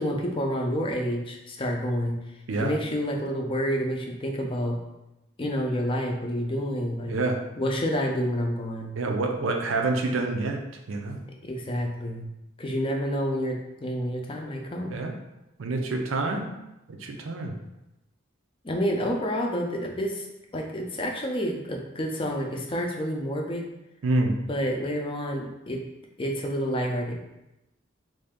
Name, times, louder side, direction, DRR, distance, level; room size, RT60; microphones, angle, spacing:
voice 1, 0.0-2.2 2.6-4.8 5.4-7.2 7.6-9.1 11.4-12.3 12.6-14.9 18.6-20.3 20.5-23.6 24.5-25.8 26.2-27.2, equal, 25° left, 1 dB, 0.5 m, -29 dB
voice 2, 7.1-7.4 9.0-10.6 10.9-11.2 14.9-15.1 15.6-16.5 16.9-17.5 24.0-24.4, right 2 dB, 85° right, 3 dB, 0.5 m, -27 dB
3.2 x 2.7 x 3.5 m, 0.93 s
head